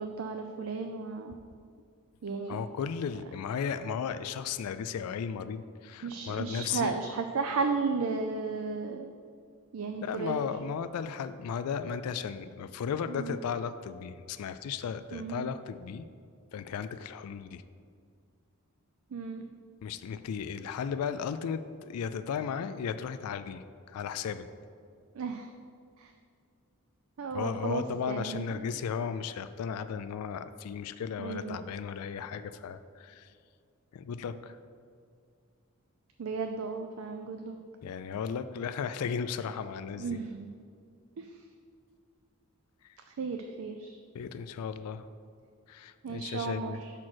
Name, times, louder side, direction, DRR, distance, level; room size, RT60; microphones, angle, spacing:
voice 1, 0.0-1.4 2.2-2.6 6.0-9.1 9.7-10.5 13.1-13.4 15.1-15.5 19.1-19.4 25.1-25.5 26.0-26.1 27.2-28.7 31.2-31.6 36.2-37.6 40.0-40.5 41.2-41.4 43.1-44.0 46.0-46.9, right 4 dB, 65° right, 5 dB, 0.4 m, -34 dB
voice 2, 2.5-6.9 10.0-16.1 16.5-17.6 19.8-24.5 27.3-33.3 33.9-34.6 37.8-40.2 44.1-45.1 45.7-46.8, left 7 dB, 85° left, 11 dB, 0.3 m, -35 dB
6.0 x 4.4 x 6.2 m, 2.3 s
head